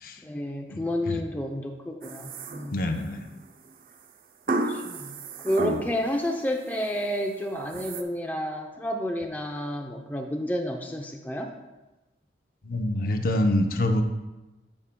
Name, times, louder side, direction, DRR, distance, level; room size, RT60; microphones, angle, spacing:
voice 1, 0.2-3.0 4.7-5.2 5.4-11.5, equal, 10° left, 1 dB, 0.5 m, -30 dB
sound 1, 2.0-3.1 4.5-6.2 6.6-7.0 7.6-8.0, right 2 dB, 50° right, 0.5 m, -32 dB
voice 2, 2.7-3.3 5.6-5.8 12.6-14.0, left 1 dB, 50° left, 5 dB, 0.7 m, -26 dB
16.0 x 5.6 x 2.2 m, 1.1 s
head